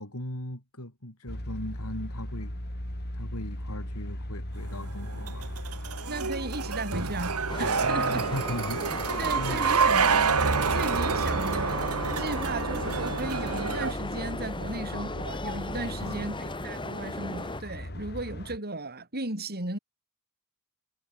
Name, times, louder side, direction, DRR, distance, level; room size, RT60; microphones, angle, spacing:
voice 1, 0.0-2.6 3.1-5.6 7.7-9.6 15.8-16.4, left 1 dB, 75° left, 7.7 m, -38 dB
sound 1, 1.3-18.6, equal, 50° left, 5.2 m, -39 dB
sound 2, 4.6-13.9, right 5 dB, 85° right, 1.8 m, -28 dB
voice 2, 6.1-8.3 9.2-19.8, right 2 dB, 45° right, 7.2 m, -36 dB
sound 3, 7.5-17.6, left 2 dB, 20° left, 5.6 m, -37 dB
head